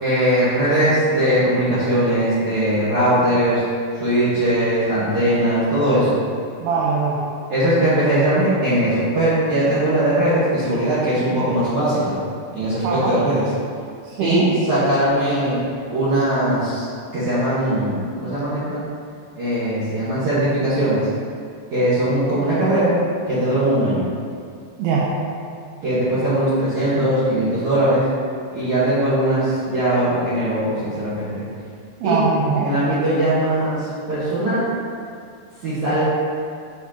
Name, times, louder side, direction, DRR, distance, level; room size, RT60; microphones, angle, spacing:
voice 1, 0.0-3.6 4.0-6.2 7.5-12.2 12.5-13.5 14.2-15.6 15.9-16.9 17.1-18.8 19.4-21.1 21.7-22.9 23.3-24.1 25.8-28.0 28.5-31.4 32.0-32.2 32.5-34.7 35.6-36.0, right 1 dB, 60° right, -12 dB, 2.1 m, -20 dB
voice 2, 6.6-7.1 12.8-13.1 14.0-14.5 24.8-25.1 32.0-32.7, right 4 dB, 80° right, -5 dB, 2.7 m, -21 dB
7.4 x 6.0 x 2.9 m, 2.3 s
omnidirectional pair, 4.7 m